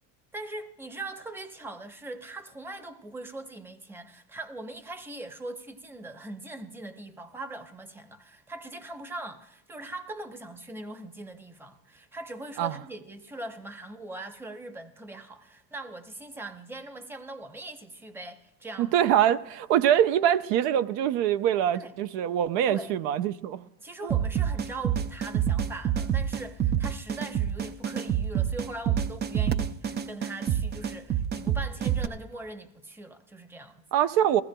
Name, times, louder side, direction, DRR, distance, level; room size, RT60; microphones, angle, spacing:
voice 1, 0.3-18.9 21.7-21.9 22.7-22.9 23.8-33.9, right 2 dB, 5° right, 0.7 m, -41 dB
voice 2, 18.8-23.6 24.0-24.1 33.9-34.4, right 10 dB, 75° right, 0.6 m, -24 dB
sound 1, 24.1-32.1, right 9 dB, 25° right, 0.3 m, -27 dB
19.5 x 15.5 x 2.2 m
cardioid pair, 120°, 44 cm